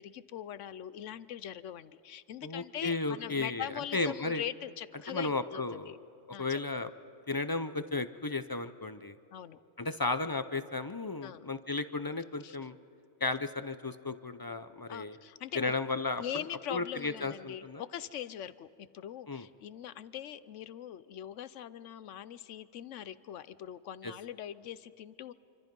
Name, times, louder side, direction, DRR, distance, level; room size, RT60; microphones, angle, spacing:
voice 1, 0.0-6.0 6.3-6.6 9.3-9.6 11.2-11.5 12.4-12.6 14.9-15.7 16.2-25.3, left 10 dB, 75° left, 16 dB, 1.0 m, -42 dB
voice 2, 2.4-4.4 5.1-5.9 6.4-6.9 7.3-9.2 9.8-12.8 13.2-15.2 15.5-16.2 16.7-17.8 19.3-19.5 24.0-24.1, left 3 dB, 30° left, 11 dB, 0.4 m, -34 dB
27.0 x 25.5 x 5.3 m, 2.9 s
omnidirectional pair, 1.3 m